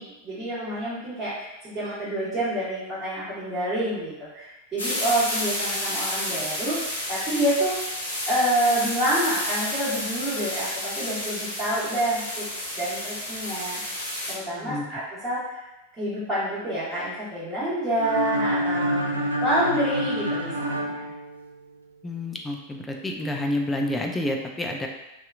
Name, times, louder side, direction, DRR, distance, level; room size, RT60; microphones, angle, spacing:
voice 1, 0.0-7.7 8.3-12.4 12.8-13.8 14.3-15.6 16.0-21.1, right 1 dB, 20° right, -13 dB, 1.2 m, -28 dB
sound 1, 4.8-14.3, left 1 dB, 75° left, 0.7 m, -31 dB
sound 2, 18.0-21.9, equal, 80° right, 0.3 m, -28 dB
voice 2, 22.0-24.9, left 1 dB, 10° left, 1 dB, 0.3 m, -29 dB
2.7 x 2.4 x 2.4 m, 0.97 s
figure-of-eight pair, 90°, 0 cm